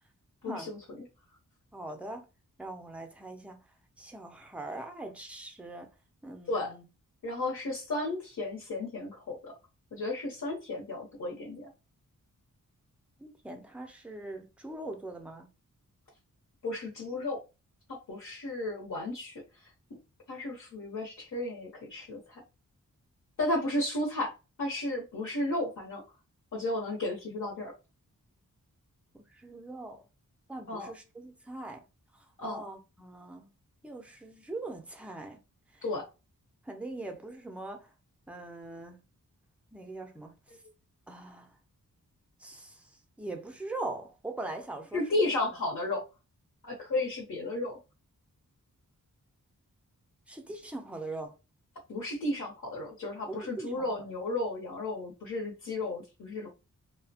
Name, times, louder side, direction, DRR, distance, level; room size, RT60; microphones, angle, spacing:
voice 1, 0.4-1.0 6.5-6.7 7.2-9.5 9.9-11.7 16.6-17.4 17.9-19.4 20.3-22.4 23.4-24.3 24.6-26.0 26.5-27.7 30.7-30.9 32.4-32.6 35.8-36.1 44.9-46.0 46.6-47.8 51.9-56.5, left 2 dB, 65° left, 0.8 m, -33 dB
voice 2, 1.7-2.3 2.6-3.6 4.0-5.9 6.2-6.9 13.2-15.5 29.1-30.1 30.5-31.8 32.1-33.5 33.8-35.4 35.7-35.8 36.6-37.9 38.3-39.0 39.7-40.4 41.1-41.6 42.4-45.2 45.5-45.6 50.3-51.4 53.3-54.1, right 2 dB, 5° right, 0.4 m, -42 dB
2.7 x 2.1 x 2.6 m
wide cardioid pair, 155°, 33 cm